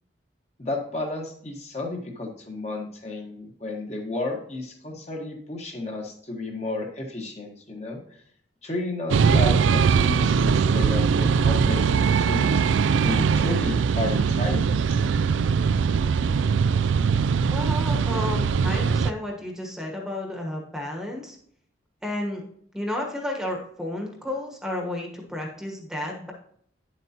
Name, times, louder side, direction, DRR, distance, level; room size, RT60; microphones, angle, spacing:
voice 1, 0.6-8.0 8.6-12.6 13.0-14.6, left 2 dB, 35° left, 1 dB, 1.4 m, -32 dB
sound 1, 9.1-19.1, right 6 dB, 85° right, 0.4 m, -21 dB
voice 2, 17.5-21.4 22.0-22.4 22.7-26.3, left 1 dB, 5° right, 0 dB, 1.2 m, -32 dB
10.0 x 7.7 x 2.9 m, 0.64 s
head